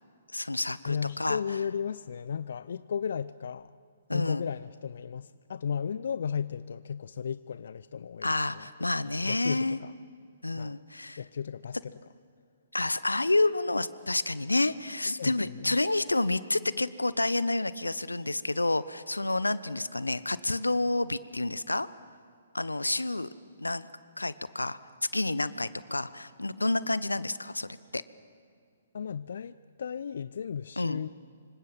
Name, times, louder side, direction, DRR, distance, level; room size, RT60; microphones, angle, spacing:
voice 1, 0.3-1.4 4.1-4.4 8.2-9.8 10.4-11.2 12.7-21.9 22.5-23.3 23.6-23.9 24.2-24.8 25.1-28.0 30.8-31.0, left 2 dB, 90° left, 17 dB, 1.0 m, -29 dB
voice 2, 0.8-3.7 4.1-8.9 9.2-9.9 10.6-10.8 11.2-11.9 15.2-15.3 15.7-15.8 28.9-31.1, left 7 dB, 60° left, 16 dB, 0.5 m, -35 dB
26.0 x 25.5 x 7.4 m, 2.3 s
figure-of-eight pair, 125°, 0 cm